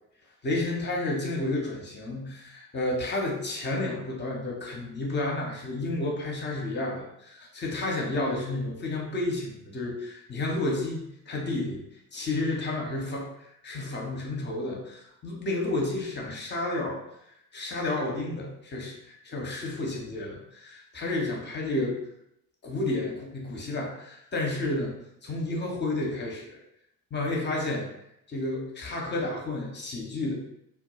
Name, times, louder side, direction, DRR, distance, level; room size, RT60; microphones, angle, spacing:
voice 1, 0.4-11.8 12.1-17.0 17.5-22.0 22.6-25.0 25.2-26.6 27.1-27.9 28.3-30.3, left 2 dB, 25° left, -1 dB, 0.6 m, -31 dB
2.1 x 2.1 x 2.9 m, 0.79 s
figure-of-eight pair, 45°, 47 cm